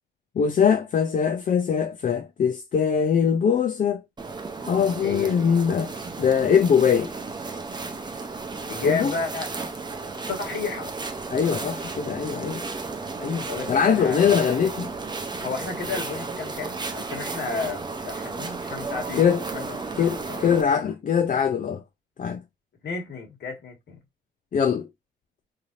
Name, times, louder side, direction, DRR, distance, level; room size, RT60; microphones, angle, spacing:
voice 1, 0.4-4.0 4.6-5.9 6.2-7.1 8.8-9.1 11.3-12.6 13.2-14.9 19.2-19.4 20.0-21.8 22.2-22.4 24.5-24.9, left 7 dB, 40° left, 0.5 m, -22 dB
sound 1, 4.2-20.6, right 3 dB, 20° right, 0.7 m, -34 dB
voice 2, 5.0-5.5 8.7-9.5 10.3-10.9 13.4-14.6 15.4-20.7 22.8-24.0, left 4 dB, 60° left, 1.6 m, -33 dB
3.3 x 2.8 x 2.5 m
cardioid pair, 90°, 20 cm